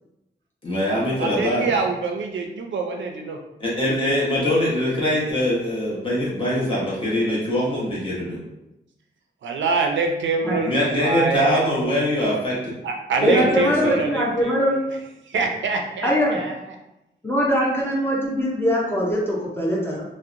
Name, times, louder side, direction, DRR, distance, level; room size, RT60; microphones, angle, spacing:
voice 1, 0.6-1.7 3.6-8.4 10.4-12.7 13.2-13.6 13.8-13.9, left 1 dB, 25° left, -6 dB, 1.0 m, -23 dB
voice 2, 1.2-3.4 9.4-11.6 12.8-14.8 15.3-16.6, right 4 dB, 80° right, 2 dB, 0.4 m, -25 dB
voice 3, 13.2-14.8 16.0-16.4 17.2-20.0, equal, 10° left, -4 dB, 0.5 m, -22 dB
2.7 x 2.1 x 2.5 m, 0.90 s
wide cardioid pair, 125°, 19 cm